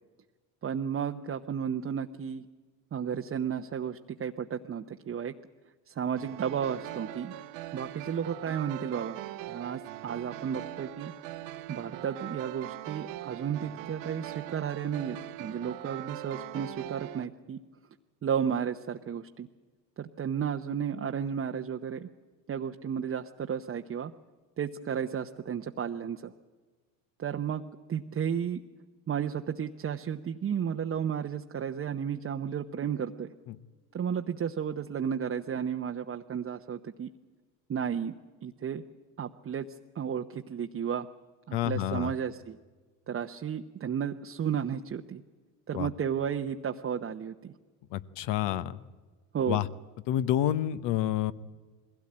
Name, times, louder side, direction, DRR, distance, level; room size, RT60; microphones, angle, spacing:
voice 1, 0.6-2.5 2.9-5.3 5.9-7.3 7.7-9.2 9.5-11.1 11.7-17.6 18.2-19.5 20.0-22.1 22.5-24.1 24.6-26.3 27.2-27.6 27.9-28.6 29.1-33.3 33.9-37.1 37.7-38.1 38.4-38.8 39.2-39.7 39.9-41.1 41.5-42.6 43.1-45.2 45.7-47.5 49.3-49.6, right 8 dB, 30° right, 4 dB, 0.9 m, -33 dB
sound 1, 6.2-17.2, right 15 dB, 65° right, 1.1 m, -41 dB
voice 2, 41.5-42.1 45.7-45.9 47.9-48.8 49.5-49.7 50.1-51.3, left 12 dB, 60° left, 15 dB, 1.1 m, -28 dB
21.5 x 17.0 x 8.7 m, 1.4 s
supercardioid pair, 90°, 47 cm